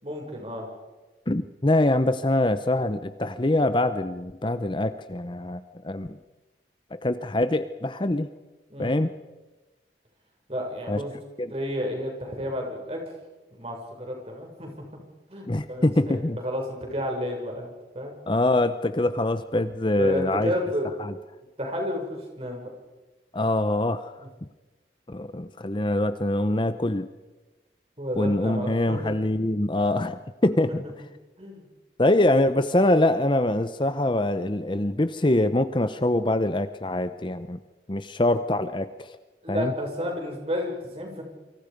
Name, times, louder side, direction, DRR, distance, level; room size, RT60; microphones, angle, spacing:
voice 1, 0.0-0.7 8.7-9.0 10.5-11.1 11.5-13.0 13.5-14.9 15.3-18.1 20.0-20.9 21.6-22.7 28.0-29.1 31.4-31.6 39.4-41.2, equal, 35° right, 1 dB, 6.7 m, -31 dB
voice 2, 1.3-6.2 6.9-8.3 8.8-9.1 10.9-11.0 11.4-11.5 15.5-16.4 18.3-20.5 21.0-21.1 23.3-24.1 25.1-27.1 28.2-30.8 32.0-37.6 37.9-39.2 39.5-39.7, left 1 dB, 25° left, 11 dB, 0.8 m, -24 dB
28.5 x 25.5 x 5.3 m, 1.2 s
head